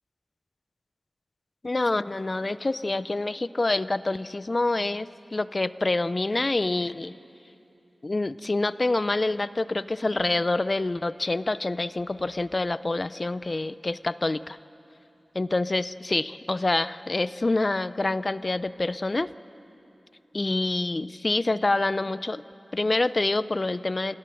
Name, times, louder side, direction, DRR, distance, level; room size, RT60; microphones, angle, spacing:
voice 1, 1.6-7.1 8.0-14.6 15.3-19.3 20.3-22.4 22.7-24.1, left 2 dB, 45° left, 16 dB, 0.5 m, -26 dB
27.5 x 17.0 x 7.8 m, 2.9 s
wide cardioid pair, 55°, 0 cm